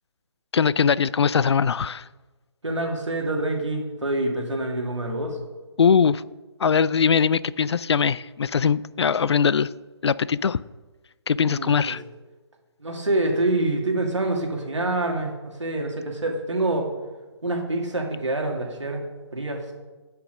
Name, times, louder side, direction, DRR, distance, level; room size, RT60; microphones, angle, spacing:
voice 1, 0.5-2.1 5.8-6.2 6.6-9.7 10.0-10.6 11.3-12.0, left 6 dB, 65° left, 19 dB, 0.4 m, -21 dB
voice 2, 2.6-5.4 11.4-12.0 12.8-16.9 17.4-19.0 19.3-19.6, right 2 dB, 85° right, 1 dB, 2.4 m, -26 dB
9.8 x 6.0 x 6.5 m, 1.2 s
figure-of-eight pair, 150°, 15 cm